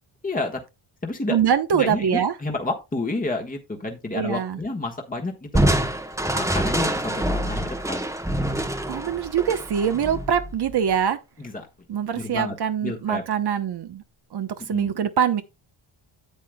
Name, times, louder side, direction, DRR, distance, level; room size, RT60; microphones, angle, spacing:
voice 1, 0.2-0.6 1.0-1.3 1.7-5.8 6.3-8.1 11.4-11.7 12.1-12.6 12.8-13.2 14.7-14.9, left 2 dB, 15° left, 1.5 m, -30 dB
voice 2, 1.3-2.3 4.1-4.6 8.9-11.2 11.9-14.0 14.3-15.4, right 8 dB, 55° right, 1.0 m, -24 dB
Crushing, 5.5-10.9, right 1 dB, 5° right, 1.1 m, -25 dB
10.0 x 7.4 x 2.3 m
supercardioid pair, 60°, 48 cm